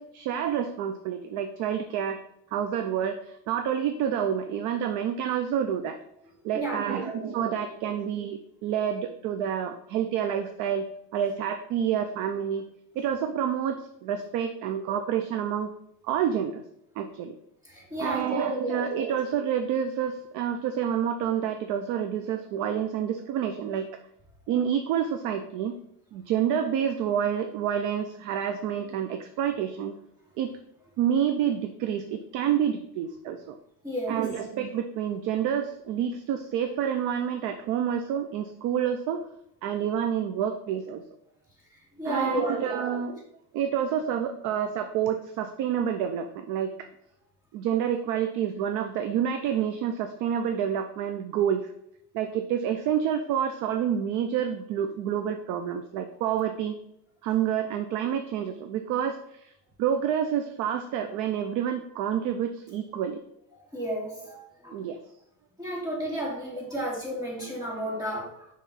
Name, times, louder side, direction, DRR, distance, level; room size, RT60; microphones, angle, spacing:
voice 1, 0.0-2.2 2.5-6.0 6.4-10.9 11.1-12.7 13.0-15.7 16.0-16.6 17.0-17.4 18.0-23.9 24.5-25.7 26.1-30.0 30.4-30.5 31.0-33.6 34.1-39.2 39.6-41.0 42.0-43.2 43.5-46.9 47.5-51.7 52.1-56.8 57.2-59.5 59.8-63.2 64.7-65.0, right 9 dB, 45° right, 7 dB, 0.5 m, -28 dB
voice 2, 6.5-7.6 17.6-19.0 33.8-34.2 42.0-42.9 63.7-64.8 65.6-68.5, equal, 10° right, -5 dB, 2.3 m, -33 dB
5.7 x 3.1 x 5.6 m, 0.76 s
cardioid pair, 145°, 45 cm